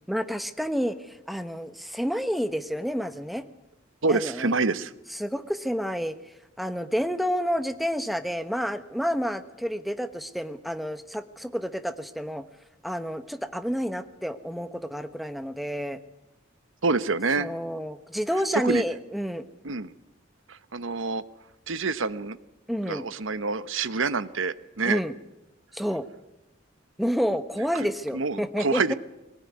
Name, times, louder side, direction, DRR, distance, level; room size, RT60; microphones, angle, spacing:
voice 1, 0.1-1.0 1.3-3.4 4.1-4.5 5.2-6.2 6.6-12.4 12.8-16.0 17.4-19.4 22.7-23.1 24.8-25.1 25.7-26.0 27.0-28.9, equal, ahead, 10 dB, 1.1 m, -29 dB
voice 2, 4.0-4.9 16.8-17.5 18.5-18.8 19.6-19.9 20.5-21.2 21.7-22.4 22.9-25.0 27.7-27.9 28.1-28.9, right 4 dB, 85° right, 15 dB, 1.0 m, -27 dB
21.5 x 18.5 x 9.6 m, 0.96 s
head